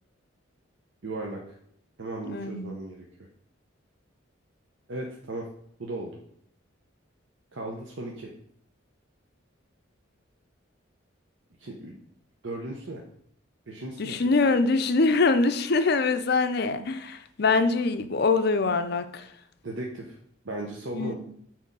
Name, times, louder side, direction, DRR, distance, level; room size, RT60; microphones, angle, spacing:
voice 1, 1.0-1.6 2.0-3.1 4.9-5.5 5.8-6.2 7.5-8.3 11.6-12.0 12.4-13.0 13.7-14.2 19.6-20.2 20.4-21.1, right 2 dB, 70° right, 0 dB, 0.9 m, -36 dB
voice 2, 2.2-2.7 14.0-19.3 20.9-21.1, left 3 dB, 55° left, 9 dB, 0.5 m, -24 dB
6.4 x 4.4 x 5.4 m, 0.68 s
head